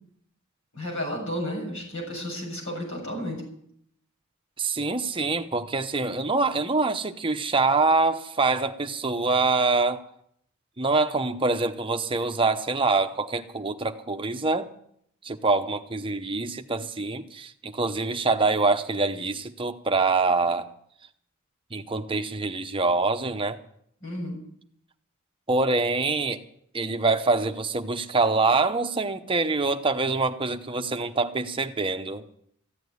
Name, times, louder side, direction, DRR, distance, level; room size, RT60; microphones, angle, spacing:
voice 1, 0.7-3.4 24.0-24.4, equal, 60° left, -1 dB, 7.1 m, -32 dB
voice 2, 4.6-10.0 10.8-14.7 15.2-20.7 21.7-23.6 25.5-26.4 26.7-32.2, right 3 dB, 25° right, 7 dB, 0.9 m, -25 dB
15.0 x 8.9 x 9.7 m, 0.69 s
head